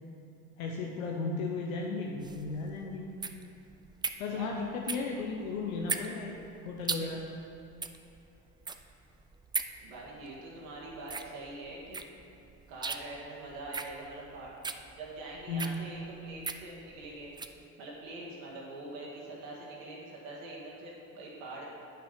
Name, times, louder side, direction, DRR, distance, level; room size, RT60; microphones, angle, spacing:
voice 1, 0.6-3.1 4.2-6.4 6.6-7.2 15.5-15.9, left 3 dB, 80° left, 0 dB, 0.8 m, -35 dB
sound 1, 2.2-17.6, right 4 dB, 10° right, 0.4 m, -39 dB
voice 2, 9.8-12.1 12.7-14.5 15.0-17.3 17.8-21.6, right 2 dB, 75° right, -4 dB, 1.9 m, -44 dB
9.0 x 6.1 x 5.1 m, 2.8 s
hypercardioid pair, 60°, 41 cm